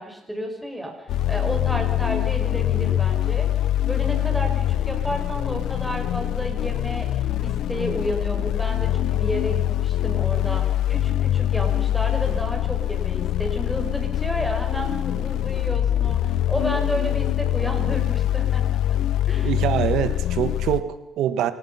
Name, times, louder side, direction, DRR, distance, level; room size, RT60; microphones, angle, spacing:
voice 1, 0.0-7.1 7.4-19.0 19.3-19.5, equal, ahead, 2 dB, 6.1 m, -31 dB
sound 1, 1.1-20.8, left 12 dB, 80° left, 0.7 m, -24 dB
voice 2, 19.4-21.5, right 11 dB, 85° right, 11 dB, 1.6 m, -24 dB
27.0 x 18.0 x 5.9 m, 0.97 s
cardioid pair, 90°, 0 cm